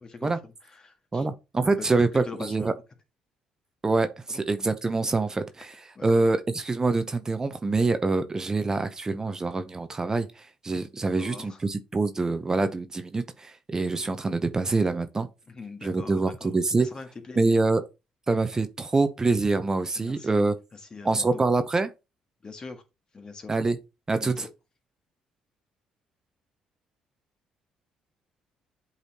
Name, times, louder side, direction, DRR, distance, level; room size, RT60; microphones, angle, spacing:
voice 1, 0.1-1.3 2.2-2.7 4.3-4.4 5.9-6.1 11.2-11.6 15.5-17.6 20.0-21.4 22.4-22.8 23.1-23.5 24.2-24.5, left 4 dB, 35° left, 1.6 m, -42 dB
voice 2, 1.1-2.7 3.8-15.3 15.8-16.9 17.4-17.8 18.3-20.6 21.0-21.9 23.5-23.8 24.1-24.5, right 3 dB, 25° right, 0.7 m, -25 dB
8.0 x 4.1 x 2.9 m
hypercardioid pair, 60°, 2 cm